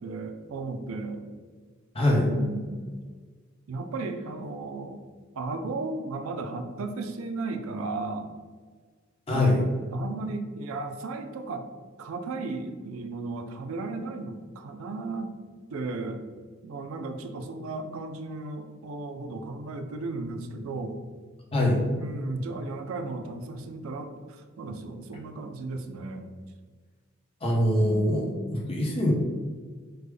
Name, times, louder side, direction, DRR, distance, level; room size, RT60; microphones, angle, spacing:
voice 1, 0.0-1.3 2.2-2.9 3.7-5.0 5.4-8.3 9.3-9.6 9.9-11.7 12.0-15.3 15.7-16.2 16.6-20.9 22.0-26.3 27.6-28.5, right 3 dB, 90° right, 6 dB, 0.4 m, -35 dB
voice 2, 1.9-2.3 9.3-9.6 21.5-21.8 27.4-29.1, left 1 dB, 30° left, -2 dB, 0.8 m, -23 dB
3.4 x 2.1 x 3.3 m, 1.5 s
head